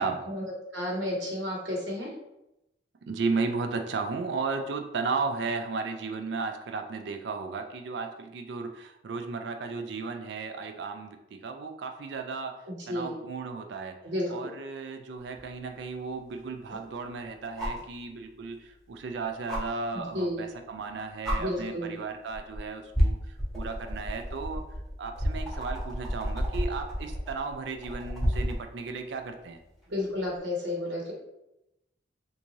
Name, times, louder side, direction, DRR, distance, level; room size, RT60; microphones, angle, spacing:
voice 1, 0.3-2.1 12.7-13.1 14.0-14.3 16.7-16.8 19.9-20.4 21.4-21.9 29.9-31.1, left 1 dB, 80° right, -1 dB, 1.0 m, -32 dB
voice 2, 3.1-12.6 12.9-13.9 14.3-23.2 23.5-24.6 25.0-29.6, right 4 dB, 65° right, 5 dB, 0.4 m, -34 dB
sound 1, 15.3-15.4 17.6-17.9 19.5-19.6 20.8-20.9 21.2-21.4 22.3-22.6 22.9-28.6 30.3-30.4, equal, ahead, 0.9 m, -30 dB
3.5 x 2.6 x 3.0 m, 0.89 s
head